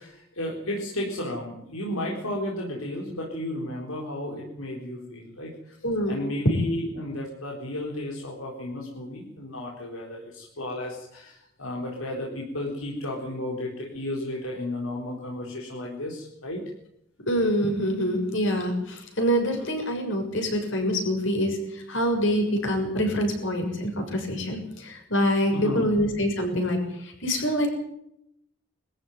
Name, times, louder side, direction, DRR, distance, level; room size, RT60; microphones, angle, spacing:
voice 1, 0.0-5.7 6.1-16.6 25.5-25.9, left 1 dB, 75° left, -2 dB, 4.2 m, -33 dB
voice 2, 5.8-6.2 17.3-27.7, equal, 60° left, 4 dB, 6.8 m, -25 dB
23.0 x 14.5 x 9.4 m, 0.79 s
head